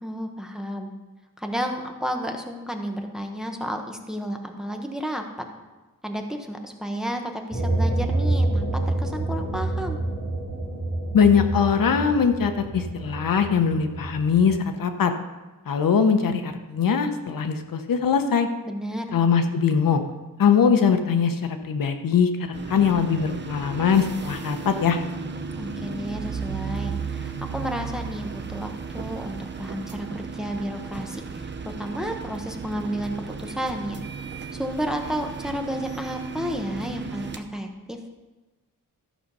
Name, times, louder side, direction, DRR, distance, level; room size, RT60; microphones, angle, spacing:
voice 1, 0.0-0.9 1.4-5.2 6.0-10.0 18.6-19.2 25.6-34.0 34.5-38.0, equal, ahead, 4 dB, 0.9 m, -32 dB
sound 1, 7.5-14.4, right 2 dB, 20° left, 4.4 m, -27 dB
voice 2, 11.1-15.1 15.7-18.5 19.1-20.0 20.4-21.4 21.6-22.3 22.7-25.0, left 6 dB, 75° left, 7 dB, 0.9 m, -21 dB
sound 2, 22.5-37.4, right 5 dB, 30° right, 0.7 m, -35 dB
13.5 x 6.4 x 5.5 m, 1.2 s
wide cardioid pair, 165°, 34 cm